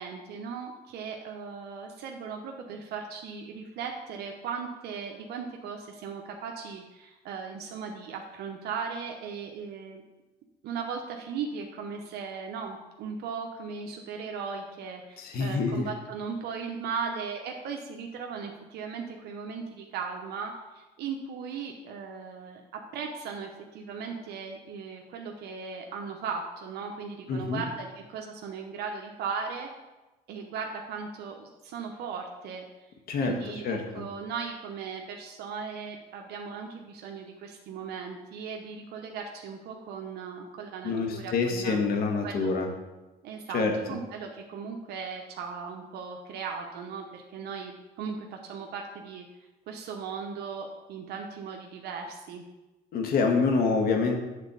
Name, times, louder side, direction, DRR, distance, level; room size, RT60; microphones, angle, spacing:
voice 1, 0.0-10.0 10.6-29.7 30.3-32.7 33.2-41.9 42.2-42.5 43.2-49.3 49.7-52.4, right 5 dB, 75° right, 2 dB, 0.9 m, -37 dB
voice 2, 15.2-15.8 27.3-27.6 33.1-33.4 33.6-34.0 40.8-42.7 43.5-43.8 52.9-54.2, left 4 dB, 65° left, 4 dB, 1.5 m, -26 dB
8.7 x 4.1 x 6.8 m, 1.1 s
cardioid pair, 110°, 17 cm